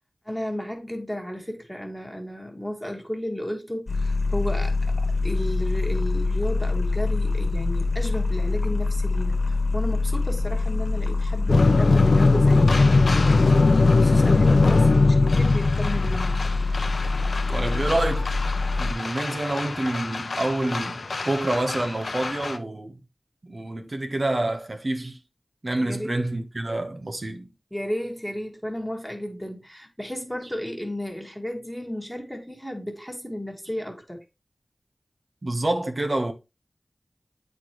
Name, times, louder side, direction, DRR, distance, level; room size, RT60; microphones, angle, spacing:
voice 1, 0.2-13.4 14.0-16.3 25.8-26.2 27.7-34.2, equal, ahead, 1.6 m, -33 dB
sound 1, 3.9-18.9, left 3 dB, 60° left, 1.2 m, -25 dB
sound 2, 11.5-22.6, left 3 dB, 85° left, 0.6 m, -21 dB
voice 2, 17.5-18.3 18.8-23.0 23.4-25.2 25.6-27.5 35.4-36.3, right 2 dB, 55° right, 1.0 m, -27 dB
8.3 x 4.5 x 3.0 m
wide cardioid pair, 55°, 0 cm